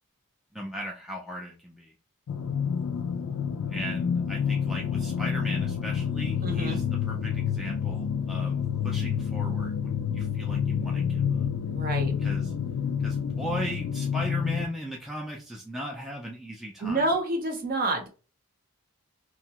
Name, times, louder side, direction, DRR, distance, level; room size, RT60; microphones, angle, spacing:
voice 1, 0.5-1.9 3.7-11.5 12.2-12.5 13.0-17.1, equal, ahead, -2 dB, 0.3 m, -37 dB
sound 1, 2.3-14.6, left 7 dB, 80° left, 0.4 m, -28 dB
voice 2, 6.4-6.8 11.7-12.1 16.8-18.1, right 2 dB, 40° right, 4 dB, 0.6 m, -28 dB
2.8 x 2.2 x 2.8 m, 0.34 s
head